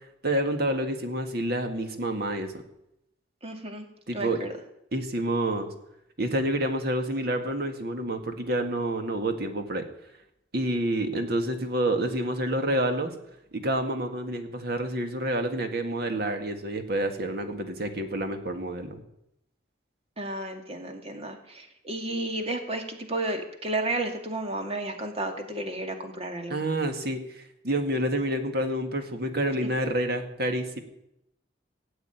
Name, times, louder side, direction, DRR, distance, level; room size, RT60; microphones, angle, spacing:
voice 1, 0.2-2.5 4.1-4.5 4.9-5.7 6.2-9.8 10.5-13.1 13.5-19.0 26.5-30.8, right 1 dB, 60° right, 6 dB, 2.1 m, -28 dB
voice 2, 3.4-3.9 4.1-4.5 20.2-26.6, right 2 dB, 35° right, 5 dB, 2.2 m, -32 dB
17.0 x 8.0 x 9.2 m, 0.81 s
head